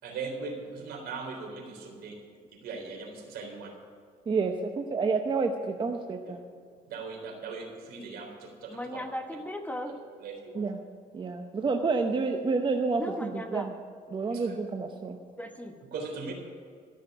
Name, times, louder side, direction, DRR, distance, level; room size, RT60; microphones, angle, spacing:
voice 1, 0.0-2.2 2.6-3.7 6.2-6.3 6.9-9.0 9.8-9.9 10.2-10.7 14.3-14.6 15.9-16.3, right 4 dB, 70° right, 2 dB, 3.7 m, -39 dB
voice 2, 4.3-6.4 10.6-10.8 11.1-13.7 14.1-15.2, right 4 dB, 30° right, 4 dB, 0.9 m, -29 dB
voice 3, 8.7-9.9 13.0-13.7 15.4-15.7, left 1 dB, 10° left, 5 dB, 1.1 m, -37 dB
13.5 x 6.6 x 9.7 m, 2.1 s
cardioid pair, 110°, 17 cm